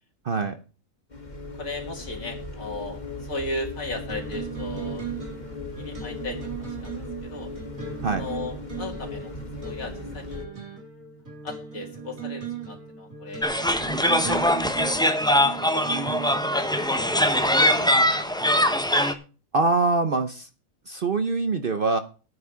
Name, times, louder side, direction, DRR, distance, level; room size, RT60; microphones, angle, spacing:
voice 1, 0.2-0.6 8.0-8.3 19.5-20.5 20.9-22.0, right 3 dB, 45° right, 9 dB, 0.9 m, -24 dB
sound 1, 1.1-10.5, left 2 dB, 30° left, 2.1 m, -37 dB
voice 2, 1.6-5.2 5.8-7.5 8.1-9.3 9.6-10.4 11.4-13.5 14.0-14.4 15.5-18.3, left 2 dB, 80° left, 1 dB, 2.5 m, -37 dB
sound 2, 4.1-18.9, right 7 dB, 75° right, 3.8 m, -38 dB
sound 3, 13.4-19.1, left 1 dB, 5° left, 0.9 m, -22 dB
11.0 x 9.5 x 4.9 m, 0.35 s
omnidirectional pair, 1.4 m